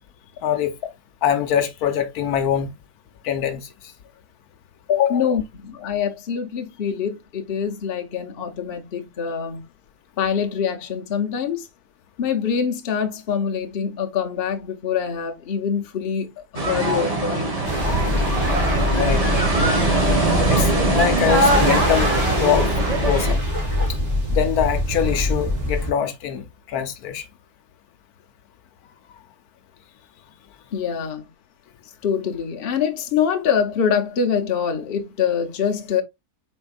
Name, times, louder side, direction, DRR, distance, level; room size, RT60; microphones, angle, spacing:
voice 1, 1.2-2.7 3.2-3.7 4.9-5.2 18.9-19.2 20.5-22.1 22.4-22.7 23.0-23.4 24.3-27.2, left 9 dB, 80° left, 1.2 m, -23 dB
voice 2, 5.1-9.7 10.2-11.6 12.2-17.5 30.7-31.3 32.0-36.0, left 7 dB, 45° left, 0.9 m, -24 dB
sound 1, 16.5-23.3, right 2 dB, 25° right, 1.4 m, -21 dB
sound 2, 17.6-25.9, left 1 dB, 50° right, 2.6 m, -23 dB
4.5 x 4.4 x 2.3 m
omnidirectional pair, 1.6 m